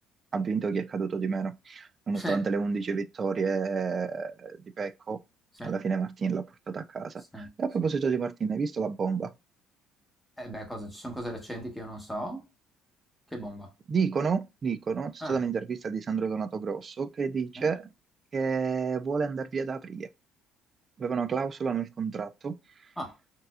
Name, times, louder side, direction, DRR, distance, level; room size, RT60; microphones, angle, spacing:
voice 1, 0.3-5.2 5.6-9.3 13.9-17.9 18.3-20.1 21.0-22.6, right 5 dB, 30° right, 0.3 m, -30 dB
voice 2, 10.4-12.4 13.3-13.7 15.2-15.3 17.6-17.7 23.0-23.1, equal, 5° left, 1.1 m, -37 dB
4.0 x 2.6 x 2.3 m
cardioid pair, 130°, 0 cm